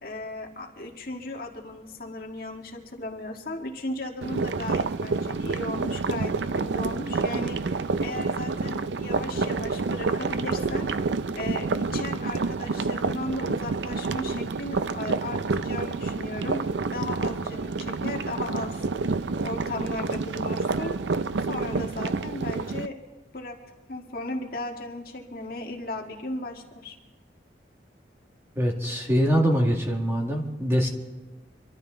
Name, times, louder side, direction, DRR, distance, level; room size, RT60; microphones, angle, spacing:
voice 1, 0.0-10.9 11.3-18.7 19.4-20.9 21.4-23.0 23.3-23.6 23.9-27.0, left 2 dB, 55° left, 2 dB, 1.8 m, -36 dB
sound 1, 4.2-22.9, right 4 dB, 85° right, 0.5 m, -28 dB
voice 2, 28.6-30.9, equal, 15° right, 1 dB, 2.0 m, -23 dB
25.0 x 13.0 x 3.9 m, 1.1 s
head